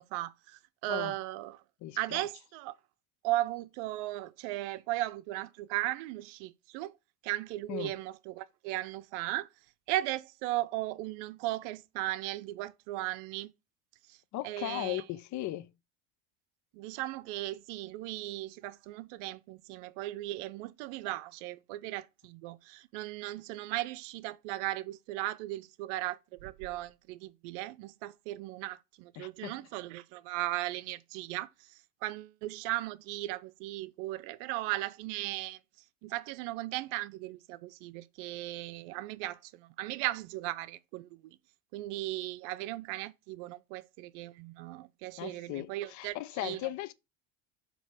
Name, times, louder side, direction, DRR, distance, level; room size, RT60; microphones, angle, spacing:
voice 1, 0.0-1.6 2.0-2.7 3.2-6.9 7.2-9.5 9.9-13.5 14.4-15.0 16.7-31.5 32.0-35.6 36.0-41.1 41.7-46.6, right 17 dB, 75° right, 0.6 m, -37 dB
voice 2, 1.8-2.3 7.7-7.9 14.3-15.7 29.2-29.6 45.2-46.9, left 15 dB, 55° left, 0.7 m, -37 dB
7.2 x 2.9 x 4.7 m
supercardioid pair, 100°, 36 cm